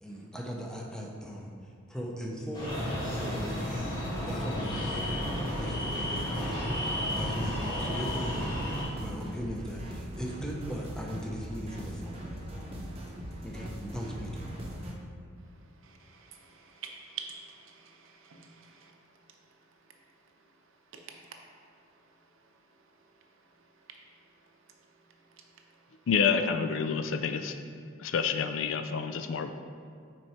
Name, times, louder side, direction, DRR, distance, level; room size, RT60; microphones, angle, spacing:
voice 1, 0.0-2.8 3.2-5.2 5.6-6.5 7.1-12.2 13.4-14.5, equal, 5° left, -1 dB, 0.6 m, -39 dB
sound 1, 2.5-8.8, equal, 20° left, 1.6 m, -33 dB
sound 2, 2.7-14.9, equal, 30° right, 0.8 m, -40 dB
voice 2, 15.8-18.9, right 7 dB, 60° right, 3 dB, 0.7 m, -46 dB
voice 3, 26.1-27.6 28.0-29.5, left 6 dB, 60° left, 8 dB, 0.4 m, -28 dB
6.1 x 4.5 x 4.3 m, 2.3 s
head